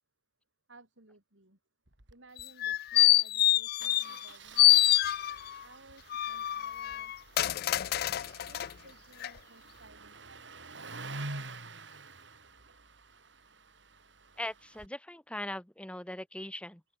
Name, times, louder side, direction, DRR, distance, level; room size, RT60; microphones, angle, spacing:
voice 1, 0.7-1.6 2.1-4.9 5.6-7.1 8.5-10.4, right 2 dB, 85° right, 4.6 m, -58 dB
Engine starting, 1.9-2.1 2.4-2.5 2.7-2.9 3.8-14.9, right 3 dB, 70° right, 4.3 m, -48 dB
sound 1, 2.4-4.3 4.6-5.6 6.1-8.7 9.2-9.3, left 14 dB, 55° left, 0.3 m, -26 dB
voice 2, 14.4-16.8, left 1 dB, 5° left, 1.4 m, -40 dB
open air
head